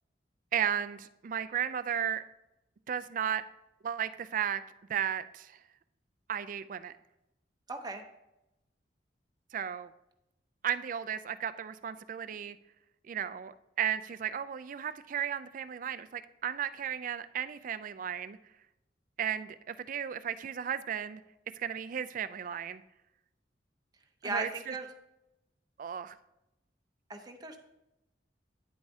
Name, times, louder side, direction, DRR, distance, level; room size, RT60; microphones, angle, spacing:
voice 1, 0.5-2.2 2.9-3.4 3.8-4.6 4.9-5.6 6.3-6.9 9.5-9.9 10.6-12.6 13.1-18.4 19.2-21.2 21.5-22.8 24.2-24.7 25.8-26.2, right 9 dB, 50° right, 13 dB, 0.3 m, -34 dB
voice 2, 7.7-8.0 24.2-24.9 27.1-27.6, right 3 dB, 25° right, 4 dB, 0.8 m, -37 dB
9.6 x 7.9 x 2.7 m, 0.90 s
head